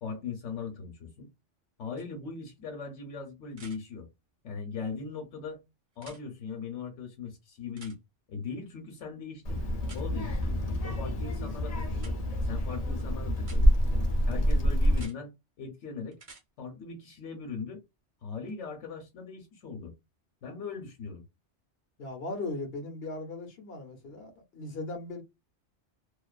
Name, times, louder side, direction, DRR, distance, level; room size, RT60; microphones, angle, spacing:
voice 1, 0.0-1.3 1.8-4.1 4.4-5.6 6.0-8.0 8.3-9.6 9.9-10.5 10.8-13.8 14.3-16.2 16.6-17.8 18.2-20.0 20.4-21.2, left 5 dB, 80° left, 1.0 m, -39 dB
sound 1, 2.0-2.1 3.5-3.8 5.9-6.2 7.8-8.0 9.8-10.0 12.0-12.1 13.4-13.6 14.9-15.2 16.1-16.4 18.5-18.6, right 3 dB, 35° right, 0.8 m, -51 dB
Child speech kid speaking, 9.4-15.1, equal, 45° left, 0.6 m, -27 dB
voice 2, 22.0-25.2, left 2 dB, 60° left, 1.0 m, -38 dB
2.5 x 2.4 x 2.2 m
omnidirectional pair, 1.2 m